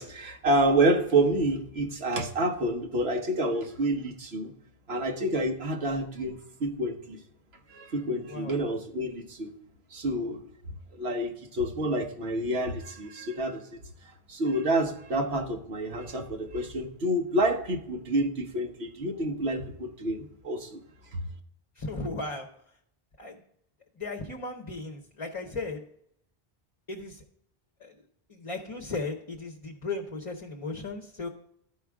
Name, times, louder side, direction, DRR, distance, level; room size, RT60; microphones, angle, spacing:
voice 1, 0.0-4.5 4.9-7.2 7.7-9.5 9.9-10.4 10.9-13.7 14.3-20.8 21.1-21.2, right 1 dB, 80° right, 4 dB, 1.4 m, -28 dB
voice 2, 21.8-22.5 23.2-23.4 24.0-25.8 26.9-27.2 27.8-28.0 28.3-31.3, left 3 dB, 35° left, 3 dB, 0.8 m, -36 dB
13.5 x 4.9 x 3.5 m, 0.72 s
omnidirectional pair, 1.0 m